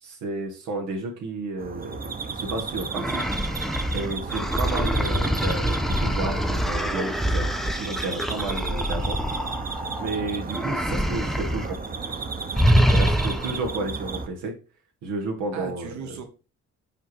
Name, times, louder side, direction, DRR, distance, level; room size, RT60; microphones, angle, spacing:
voice 1, 0.0-3.2 3.9-9.2 10.0-11.8 12.8-14.6 15.0-15.9, right 2 dB, 85° right, 2 dB, 1.3 m, -32 dB
sound 1, 1.6-14.3, right 4 dB, 30° right, 0.8 m, -33 dB
sound 2, 2.9-10.1 10.5-11.8 12.0-12.2 12.5-13.7, equal, ahead, 0.5 m, -25 dB
voice 2, 12.5-13.1 15.5-16.2, right 5 dB, 70° right, 5 dB, 1.4 m, -38 dB
5.7 x 4.5 x 4.3 m, 0.33 s
cardioid pair, 90°, 30 cm